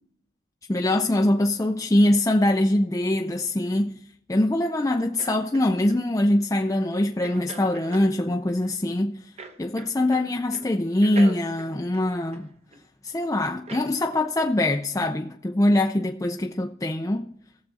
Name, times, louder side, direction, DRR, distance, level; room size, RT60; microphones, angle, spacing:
voice 1, 0.7-4.0 4.3-9.3 9.6-12.5 13.0-17.3, left 1 dB, 15° left, 0.4 m, -23 dB
sound 1, 5.2-6.0 7.2-8.1 9.4-10.3 10.5-10.7 11.0-12.8 13.7-13.9 14.4-14.6, right 3 dB, 35° right, 0.9 m, -40 dB
17.5 x 7.3 x 4.1 m
head